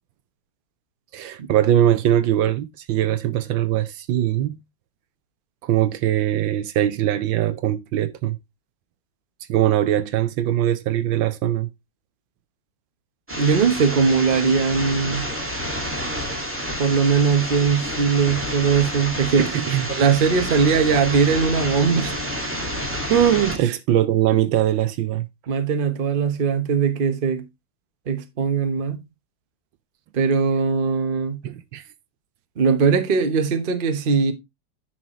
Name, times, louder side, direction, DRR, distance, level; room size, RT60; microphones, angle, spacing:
voice 1, 1.1-4.6 5.6-8.4 9.5-11.7 19.4-19.9 23.1-25.3 31.4-31.8, right 12 dB, 75° right, 1.3 m, -21 dB
sound 1, 13.3-23.6, equal, 5° right, 1.7 m, -29 dB
voice 2, 13.4-15.3 16.8-19.5 19.9-22.2 23.6-23.7 25.5-27.4 28.1-29.0 30.1-31.4 32.6-34.3, right 5 dB, 40° right, 0.8 m, -20 dB
10.0 x 6.1 x 3.0 m
omnidirectional pair, 2.3 m